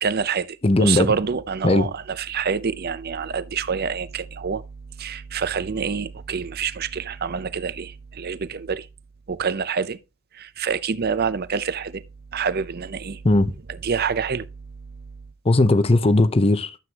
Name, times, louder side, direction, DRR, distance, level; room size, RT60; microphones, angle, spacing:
voice 1, 0.0-4.6 5.0-8.9 9.3-10.0 10.3-12.0 12.3-13.2 13.8-14.5, right 6 dB, 45° right, 0.6 m, -26 dB
voice 2, 0.6-1.1 1.6-1.9 13.2-13.5 15.4-16.8, left 2 dB, 25° left, 0.6 m, -18 dB
11.5 x 7.8 x 2.9 m
head